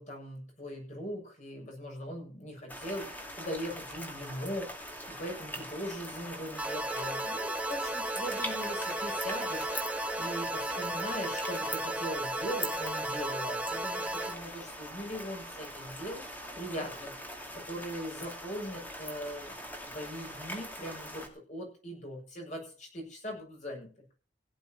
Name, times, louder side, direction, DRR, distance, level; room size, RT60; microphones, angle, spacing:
voice 1, 0.0-23.9, equal, 40° left, 0 dB, 7.2 m, -40 dB
sound 1, 2.7-21.3, equal, 10° left, 2.2 m, -42 dB
sound 2, 6.6-14.4, right 1 dB, 5° right, 0.8 m, -34 dB
16.5 x 11.0 x 4.5 m, 0.37 s
head